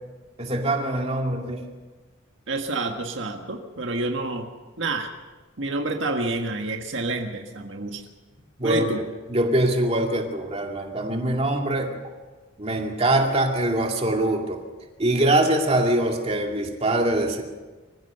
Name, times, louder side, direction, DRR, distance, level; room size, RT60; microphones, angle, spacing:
voice 1, 0.4-1.6 8.6-8.9 9.3-11.9 12.6-14.6 15.0-17.4, right 1 dB, 30° right, 2 dB, 2.3 m, -23 dB
voice 2, 2.5-4.5 4.8-5.1 5.6-8.0 8.6-9.0, right 2 dB, 70° right, 4 dB, 1.6 m, -28 dB
24.5 x 15.5 x 6.8 m, 1.3 s
head